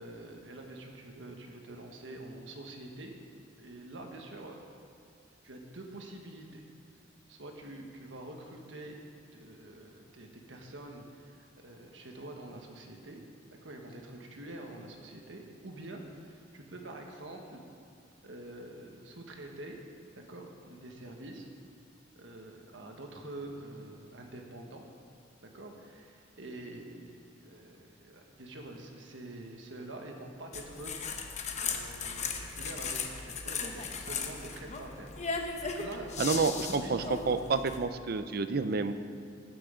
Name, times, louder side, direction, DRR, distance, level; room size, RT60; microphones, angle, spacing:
voice 1, 0.0-3.1 3.6-4.6 5.4-6.6 7.3-9.0 9.3-13.2 13.5-17.6 18.2-19.8 20.1-21.5 22.1-24.8 25.4-30.9 31.6-37.2, right 1 dB, 70° right, 2 dB, 1.4 m, -46 dB
sound 1, 30.5-37.8, left 5 dB, 40° left, 0.9 m, -37 dB
voice 2, 36.2-38.9, right 4 dB, 55° right, 10 dB, 0.5 m, -29 dB
18.5 x 6.2 x 5.1 m, 2.4 s
head